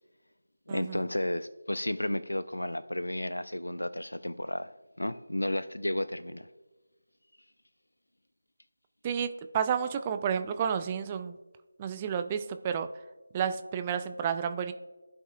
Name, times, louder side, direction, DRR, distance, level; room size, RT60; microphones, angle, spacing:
voice 1, 0.7-4.7 5.0-6.5, left 1 dB, 75° left, 15 dB, 0.5 m, -32 dB
voice 2, 9.0-11.4 11.8-12.9 13.3-14.7, right 7 dB, 15° right, 9 dB, 0.3 m, -31 dB
15.5 x 5.4 x 2.4 m, 1.3 s
figure-of-eight pair, 160°, 0 cm